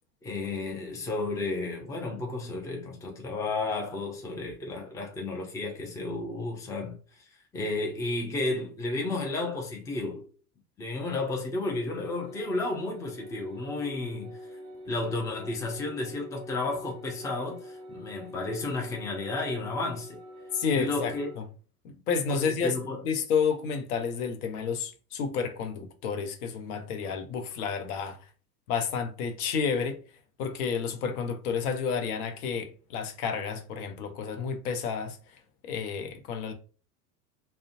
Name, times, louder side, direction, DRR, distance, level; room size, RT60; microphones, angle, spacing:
voice 1, 0.2-7.3 7.5-10.2 10.8-14.4 14.8-20.2 20.7-21.3 22.3-23.0, left 2 dB, 5° left, 0.4 m, -32 dB
sound 1, 12.0-21.4, equal, 10° right, 1.0 m, -45 dB
voice 2, 20.5-21.4 21.8-22.7 23.0-28.2 28.7-30.0 30.4-35.2 35.6-36.5, left 6 dB, 65° left, 0.7 m, -30 dB
2.4 x 2.2 x 2.5 m
hypercardioid pair, 85°, 49 cm